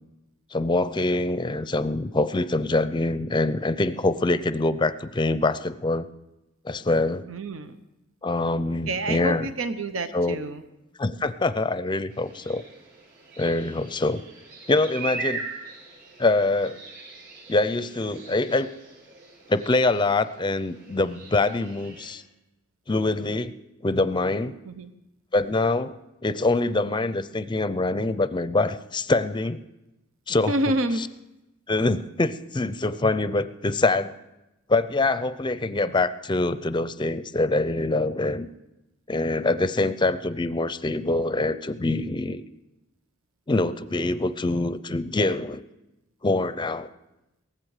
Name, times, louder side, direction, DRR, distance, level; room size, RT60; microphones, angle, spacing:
voice 1, 0.5-6.1 6.6-7.3 8.2-9.5 10.1-10.4 11.0-12.6 13.4-14.2 14.7-15.5 16.2-16.8 17.5-18.7 19.5-22.2 22.9-23.5 23.8-24.5 25.3-26.0 26.2-29.6 30.3-30.5 31.0-31.1 31.7-34.1 34.7-38.5 39.1-42.4 43.5-45.6 46.2-46.9, left 2 dB, 25° left, 14 dB, 0.5 m, -24 dB
voice 2, 7.3-7.8 8.9-10.6 24.6-24.9 30.5-31.0, right 1 dB, 85° right, 10 dB, 0.9 m, -28 dB
sound 1, 12.1-22.1, right 4 dB, 55° right, 5.9 m, -41 dB
18.0 x 15.0 x 4.9 m, 0.94 s
head